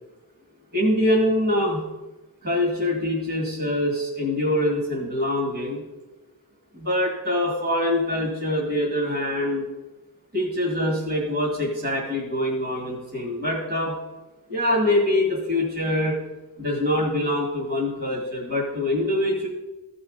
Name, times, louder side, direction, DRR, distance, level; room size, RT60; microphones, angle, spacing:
voice 1, 0.7-1.8 2.4-5.8 6.7-9.7 10.3-14.0 14.5-16.2 16.6-19.5, left 1 dB, 40° right, -4 dB, 2.6 m, -24 dB
15.0 x 5.6 x 4.1 m, 1.1 s
wide cardioid pair, 90°, 36 cm